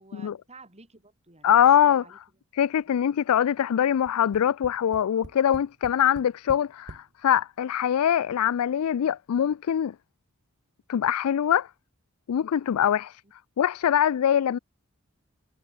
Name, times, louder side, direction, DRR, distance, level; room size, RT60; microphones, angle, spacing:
voice 1, 0.0-2.2 2.9-3.1, right 3 dB, 30° right, 5.8 m, -52 dB
voice 2, 1.4-2.0 2.5-9.9 10.9-11.7 12.3-13.2 13.6-14.6, left 9 dB, 80° left, 0.4 m, -23 dB
Tap, 4.1-7.1 7.9-8.0 8.3-8.4, right 1 dB, 55° right, 1.9 m, -45 dB
head